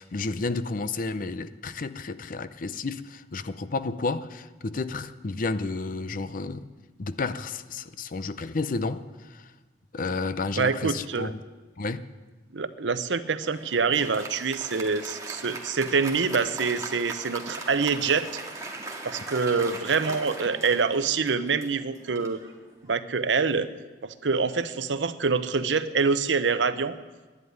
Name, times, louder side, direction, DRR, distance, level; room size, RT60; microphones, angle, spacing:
voice 1, 0.0-6.7 7.0-9.5 9.9-11.4 11.8-12.1, left 3 dB, 50° left, 0.6 m, -31 dB
voice 2, 10.6-11.3 12.5-18.3 19.0-22.4 22.9-23.7 24.0-27.0, right 5 dB, 85° right, 0.8 m, -25 dB
Applause, 13.4-23.2, right 3 dB, 20° right, 1.8 m, -39 dB
11.0 x 11.0 x 9.6 m
head